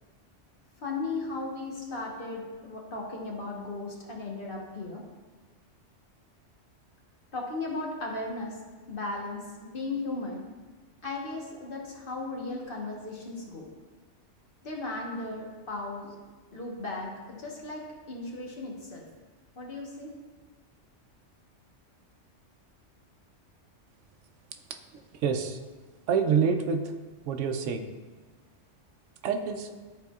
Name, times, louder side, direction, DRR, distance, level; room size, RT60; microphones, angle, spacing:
voice 1, 0.8-5.0 7.3-8.6 8.9-10.4 11.0-13.7 14.6-16.2 16.5-19.0 19.5-20.2, left 2 dB, 50° left, -1 dB, 1.2 m, -36 dB
voice 2, 25.2-25.6 26.1-26.8 27.3-27.8 29.2-29.7, right 6 dB, 85° right, 7 dB, 0.9 m, -26 dB
11.0 x 4.2 x 2.3 m, 1.4 s
omnidirectional pair, 1.2 m